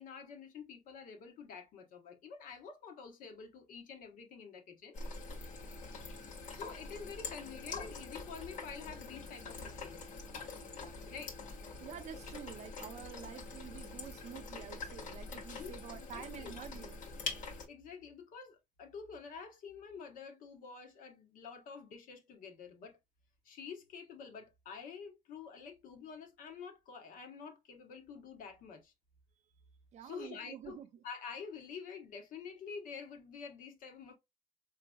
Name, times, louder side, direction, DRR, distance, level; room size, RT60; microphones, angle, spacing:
voice 1, 0.0-5.0 6.5-10.0 11.0-11.4 15.6-16.5 17.7-23.0 23.4-28.9 30.0-34.2, left 6 dB, 85° left, 1.2 m, -48 dB
sound 1, 4.9-17.6, left 3 dB, 65° left, 1.7 m, -45 dB
voice 2, 11.8-17.0 29.9-31.0, right 9 dB, 60° right, 0.6 m, -48 dB
5.1 x 3.1 x 2.3 m
cardioid pair, 170°, 14 cm